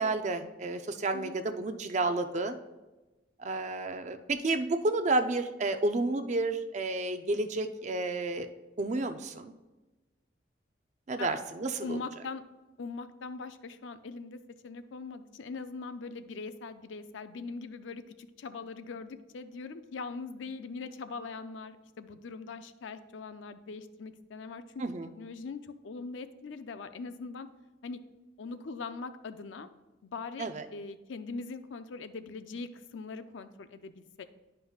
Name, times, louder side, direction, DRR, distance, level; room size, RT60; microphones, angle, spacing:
voice 1, 0.0-2.5 3.4-8.5 8.8-9.5 11.1-12.0 24.8-25.1 30.4-30.6, right 2 dB, 40° right, 8 dB, 0.4 m, -31 dB
voice 2, 11.8-12.4 12.8-24.8 25.2-27.5 27.8-28.0 28.4-29.7 30.0-34.2, left 4 dB, 80° left, 10 dB, 0.4 m, -41 dB
11.0 x 5.3 x 2.4 m, 1.1 s
head